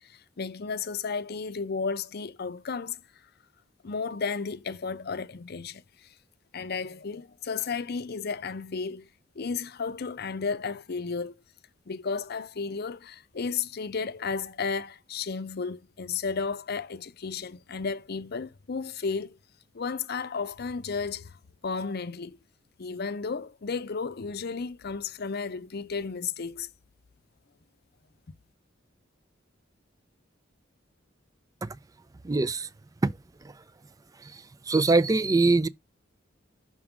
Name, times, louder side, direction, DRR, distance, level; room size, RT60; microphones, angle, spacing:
voice 1, 0.0-3.0 3.8-6.1 6.5-9.1 9.4-11.3 11.9-19.4 19.7-21.4 21.6-22.4 22.8-26.7, left 5 dB, 55° left, 0.6 m, -33 dB
voice 2, 32.2-32.7 33.0-33.1 34.7-35.7, right 3 dB, 20° right, 0.4 m, -22 dB
6.1 x 3.6 x 5.9 m
head